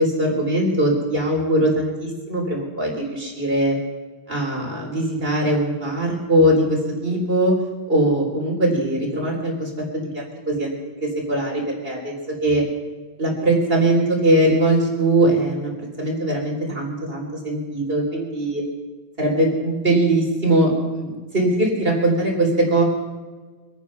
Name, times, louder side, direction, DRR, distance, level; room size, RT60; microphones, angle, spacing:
voice 1, 0.0-3.8 4.3-7.5 7.9-12.2 12.4-12.6 13.2-15.7 16.0-18.6 19.2-22.8, right 1 dB, 65° right, 0 dB, 3.9 m, -21 dB
25.0 x 9.5 x 5.7 m, 1.3 s
omnidirectional pair, 1.0 m